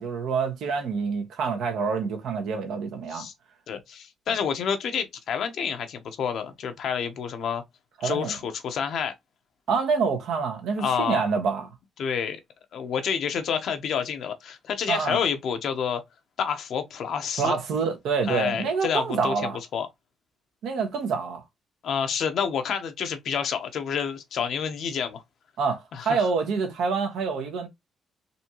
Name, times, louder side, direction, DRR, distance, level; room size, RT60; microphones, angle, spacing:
voice 1, 0.0-3.3 8.0-8.4 9.7-11.7 14.9-15.2 17.4-19.6 20.6-21.4 25.6-27.7, right 5 dB, 80° right, 1.2 m, -27 dB
voice 2, 3.7-7.6 8.0-9.1 10.8-11.2 12.0-12.4 12.7-16.0 16.4-17.6 18.3-19.9 21.8-25.2 25.9-26.2, left 7 dB, 70° left, 0.9 m, -29 dB
4.2 x 2.8 x 3.0 m
cardioid pair, 90°, 0 cm